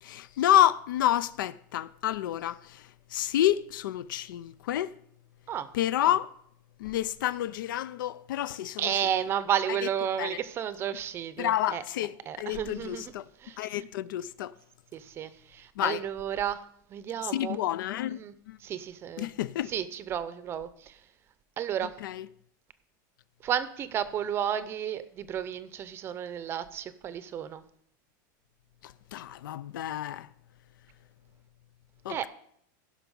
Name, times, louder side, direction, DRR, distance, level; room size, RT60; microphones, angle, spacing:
voice 1, 0.0-4.9 5.7-6.3 6.8-9.0 9.7-9.8 10.2-10.4 11.4-13.2 13.6-14.5 15.8-16.0 17.3-18.2 18.5-18.6 19.2-19.7 22.0-22.3 28.8-30.3 32.0-32.3, left 12 dB, 90° left, 0.5 m, -29 dB
voice 2, 8.8-11.8 12.3-13.1 13.4-13.8 14.9-16.6 16.9-17.7 18.2-18.3 18.6-19.3 19.7-21.0 21.6-21.9 23.4-27.6 32.1-32.3, right 9 dB, 25° right, 0.6 m, -32 dB
16.0 x 5.9 x 5.4 m
supercardioid pair, 165°, 11 cm